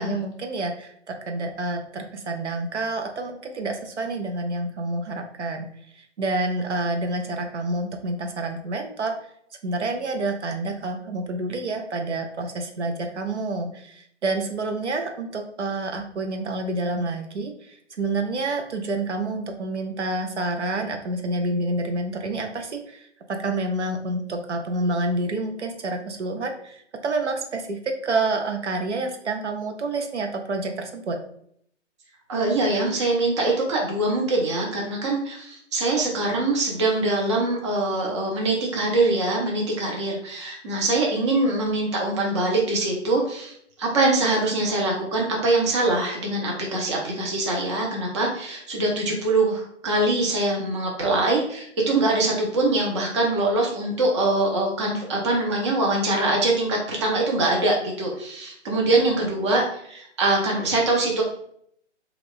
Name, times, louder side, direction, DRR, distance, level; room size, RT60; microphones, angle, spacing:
voice 1, 0.0-5.7 6.0-9.1 9.6-31.2, right 2 dB, 70° right, 4 dB, 0.6 m, -28 dB
voice 2, 32.3-43.5 43.8-61.2, right 2 dB, 25° right, -1 dB, 0.6 m, -23 dB
3.0 x 2.4 x 3.5 m, 0.67 s
figure-of-eight pair, 135°, 36 cm